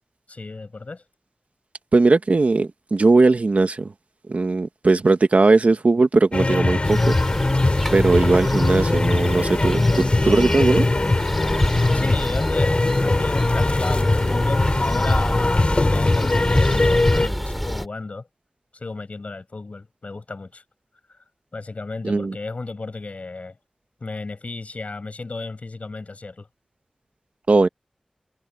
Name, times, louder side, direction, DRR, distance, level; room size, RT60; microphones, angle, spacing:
voice 1, 0.3-1.0 11.9-18.3 18.7-20.6 21.5-23.6 24.0-26.5, left 3 dB, 70° left, 6.9 m, -33 dB
voice 2, 1.9-3.9 4.3-7.2 7.9-10.9 22.0-22.3 27.5-27.7, right 3 dB, 75° right, 1.6 m, -18 dB
sound 1, 6.3-17.3, left 2 dB, 50° left, 4.6 m, -20 dB
sound 2, 6.8-17.9, equal, ahead, 7.0 m, -28 dB
wide cardioid pair, 50°, 2 cm